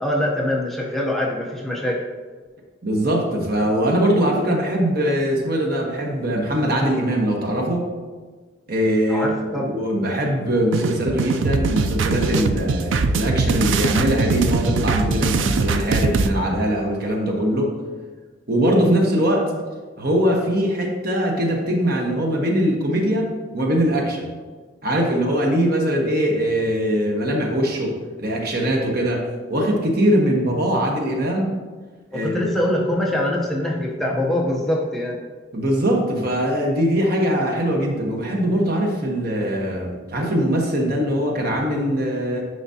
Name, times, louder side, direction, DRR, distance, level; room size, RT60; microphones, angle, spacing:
voice 1, 0.0-2.0 9.1-9.7 32.1-35.2, left 1 dB, ahead, -3 dB, 0.7 m, -23 dB
voice 2, 2.8-7.9 8.7-9.3 9.6-17.7 18.5-19.5 20.0-23.3 23.5-24.3 24.8-27.9 28.2-29.2 29.5-31.5 32.1-32.3 35.5-42.5, equal, 50° right, 0 dB, 1.2 m, -21 dB
sound 1, 10.7-16.3, right 4 dB, 80° right, 0.4 m, -22 dB
9.6 x 5.0 x 2.8 m, 1.4 s
head